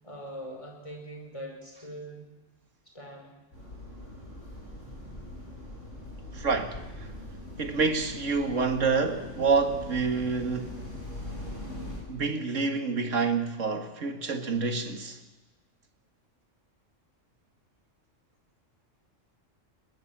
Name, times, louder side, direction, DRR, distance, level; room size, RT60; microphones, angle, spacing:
voice 1, 0.0-2.3 2.9-3.3, equal, 25° left, 5.4 m, -42 dB
sound 1, 3.5-12.0, left 1 dB, 80° left, 7.6 m, -41 dB
voice 2, 6.3-7.1 7.6-10.8 12.1-15.2, right 4 dB, 80° right, 2.2 m, -28 dB
22.0 x 20.0 x 7.4 m
omnidirectional pair, 1.3 m